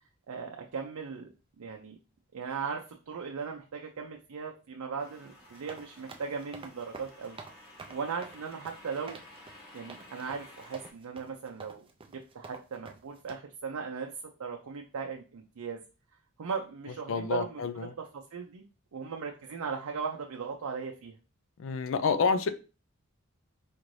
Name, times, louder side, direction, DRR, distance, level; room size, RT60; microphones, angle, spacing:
voice 1, 0.3-1.3 1.6-2.0 2.3-7.4 7.9-9.2 9.7-14.1 14.4-15.8 16.4-18.6 18.9-21.1, right 5 dB, 85° right, 0.5 m, -38 dB
sound 1, 5.0-10.9, left 1 dB, 45° left, 1.4 m, -53 dB
sound 2, 5.4-13.4, right 4 dB, 25° right, 0.4 m, -48 dB
voice 2, 17.1-17.9 21.6-22.5, left 5 dB, 65° left, 0.4 m, -28 dB
4.3 x 2.6 x 3.1 m
head